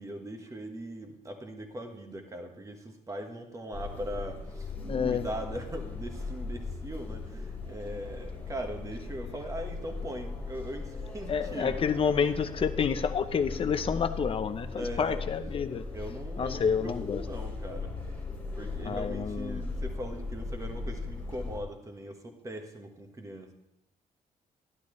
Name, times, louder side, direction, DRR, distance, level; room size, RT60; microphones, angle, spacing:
voice 1, 0.0-4.7 5.0-12.1 14.7-15.2 15.9-18.2 18.5-23.5, equal, 20° right, 4 dB, 1.4 m, -40 dB
sound 1, 3.7-21.6, left 3 dB, 15° left, 2.3 m, -38 dB
voice 2, 4.9-5.3 11.3-15.8 16.4-17.2 18.8-19.6, left 6 dB, 40° left, 9 dB, 0.7 m, -29 dB
12.0 x 11.5 x 3.2 m, 0.85 s
cardioid pair, 130°, 15 cm